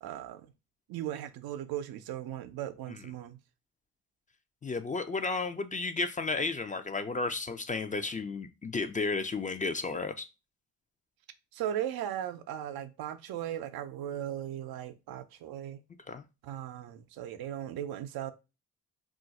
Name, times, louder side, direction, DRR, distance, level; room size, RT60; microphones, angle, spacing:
voice 1, 0.0-0.5 0.9-3.4 11.5-15.8 16.4-18.3, right 11 dB, 75° right, 0.5 m, -37 dB
voice 2, 4.6-10.3 16.1-16.2, left 3 dB, 20° left, 0.4 m, -33 dB
2.4 x 2.2 x 4.0 m
supercardioid pair, 65°, 37 cm